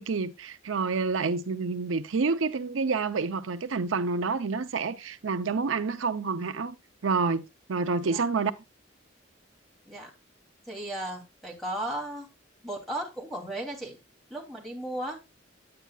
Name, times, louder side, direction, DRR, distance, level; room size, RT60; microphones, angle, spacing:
voice 1, 0.0-6.8 7.0-7.4 7.7-8.5, right 4 dB, 85° right, 0.6 m, -28 dB
voice 2, 10.7-12.3 12.6-14.0 14.3-15.2, right 1 dB, ahead, 2.8 m, -35 dB
9.1 x 8.7 x 2.4 m
head